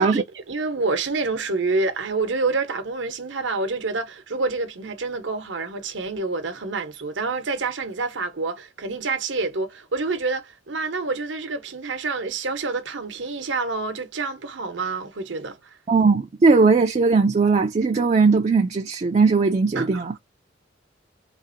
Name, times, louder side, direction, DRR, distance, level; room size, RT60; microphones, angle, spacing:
voice 1, 0.0-15.6 19.8-20.2, right 3 dB, 85° right, 0.9 m, -27 dB
voice 2, 15.9-20.2, right 4 dB, 35° right, 0.4 m, -18 dB
3.9 x 2.4 x 2.5 m
head